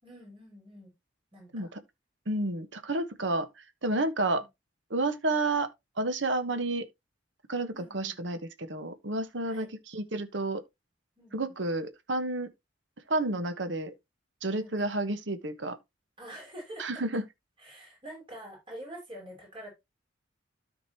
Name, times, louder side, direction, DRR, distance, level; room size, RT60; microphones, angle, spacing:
voice 1, 0.0-0.9 1.3-1.7 4.3-4.5 7.7-8.1 9.4-9.7 11.2-11.5 14.5-14.7 16.2-16.9 17.6-19.7, right 1 dB, 30° right, 5.8 m, -46 dB
voice 2, 2.3-3.5 3.8-4.4 4.9-5.7 6.0-6.9 7.5-10.6 11.3-12.5 13.1-13.9 14.4-15.8 16.8-17.2, right 2 dB, 80° right, 1.2 m, -30 dB
13.0 x 5.1 x 2.9 m
head